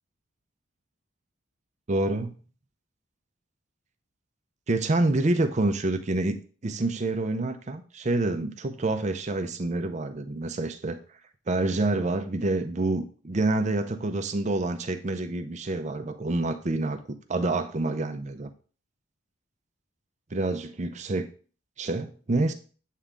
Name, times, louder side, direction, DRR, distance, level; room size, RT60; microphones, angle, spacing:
voice 1, 1.9-2.4 4.7-6.3 6.6-11.0 11.5-18.5 20.3-21.3 21.8-22.5, right 2 dB, 35° right, 8 dB, 0.5 m, -27 dB
8.3 x 3.4 x 3.7 m, 0.40 s
head